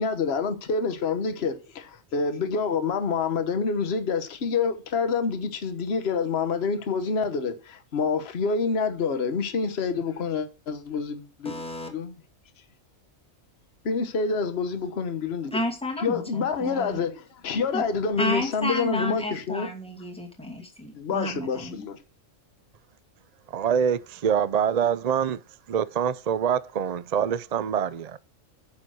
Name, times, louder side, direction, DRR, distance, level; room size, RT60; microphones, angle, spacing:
voice 1, 0.0-11.6 11.9-12.1 13.8-15.6 16.0-19.7 20.9-22.0, left 5 dB, 50° left, 1.4 m, -27 dB
voice 2, 11.4-11.9 15.5-17.0 17.7-17.9 18.2-21.8, left 1 dB, 5° left, 2.3 m, -32 dB
voice 3, 23.5-25.4 25.7-28.2, right 8 dB, 55° right, 0.4 m, -25 dB
9.8 x 7.0 x 6.3 m
omnidirectional pair, 1.4 m